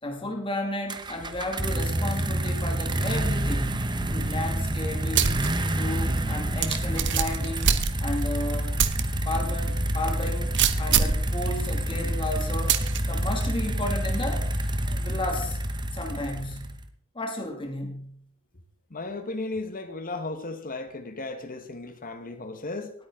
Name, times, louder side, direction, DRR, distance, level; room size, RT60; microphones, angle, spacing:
voice 1, 0.0-5.4 5.7-8.8 9.3-10.5 10.8-12.8 13.1-14.5 14.9-15.6 15.9-16.8 17.1-18.2, left 1 dB, 25° left, 2.4 m, -33 dB
sound 1, 0.9-16.9, right 1 dB, 20° right, 1.0 m, -28 dB
sound 2, 5.1-5.5 5.9-6.0 6.6-8.3 8.8-9.0 9.5-9.6 10.6-11.3 12.7-13.0, right 7 dB, 55° right, 0.9 m, -23 dB
voice 2, 18.9-22.9, left 2 dB, 40° left, 1.4 m, -35 dB
19.0 x 8.9 x 3.8 m
head